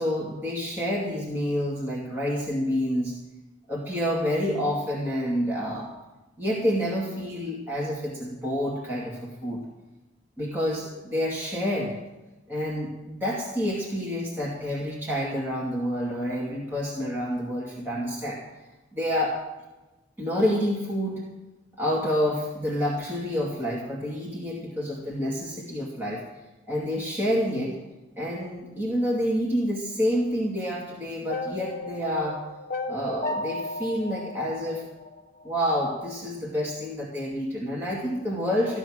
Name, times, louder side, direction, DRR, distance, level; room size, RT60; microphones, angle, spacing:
voice 1, 0.0-3.2 3.7-5.9 6.4-9.6 10.4-11.9 12.5-18.4 18.9-19.4 20.2-21.2 21.8-26.2 26.7-27.7 28.2-32.4 32.9-34.8 35.4-38.8, equal, 10° right, -5 dB, 2.3 m, -28 dB
sound 1, 31.3-35.5, left 2 dB, 45° left, 1.5 m, -34 dB
15.0 x 11.0 x 6.3 m, 1.1 s
head